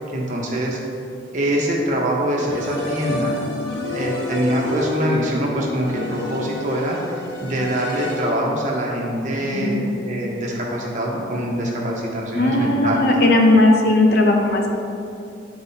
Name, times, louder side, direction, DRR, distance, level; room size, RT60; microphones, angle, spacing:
voice 1, 0.1-0.8 1.3-3.4 3.9-7.0 7.4-13.1, right 1 dB, 40° right, -2 dB, 1.0 m, -24 dB
sound 1, 2.5-8.6, left 2 dB, 85° left, 1.3 m, -29 dB
voice 2, 9.4-9.8 12.3-14.7, left 2 dB, 55° left, 1 dB, 0.7 m, -17 dB
9.4 x 4.7 x 2.8 m, 2.6 s
head